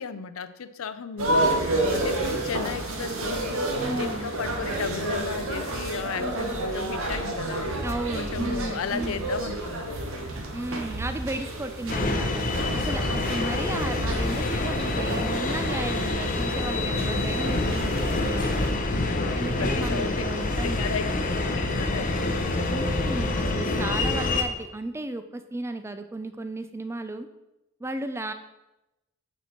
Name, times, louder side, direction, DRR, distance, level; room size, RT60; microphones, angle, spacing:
voice 1, 0.0-3.6 3.9-7.7 8.1-10.2 13.3-13.7 19.1-20.2 20.6-21.0 21.4-22.8, left 6 dB, 75° left, 12 dB, 0.5 m, -35 dB
sound 1, 1.2-18.7, right 1 dB, 70° right, 1.3 m, -30 dB
voice 2, 3.8-4.3 7.8-9.3 10.5-18.5 19.3-21.0 22.7-27.3 27.8-28.3, right 2 dB, 15° right, 9 dB, 0.4 m, -34 dB
sound 2, 11.9-24.4, left 2 dB, 40° left, 0.7 m, -27 dB
8.2 x 4.4 x 4.4 m, 0.96 s
head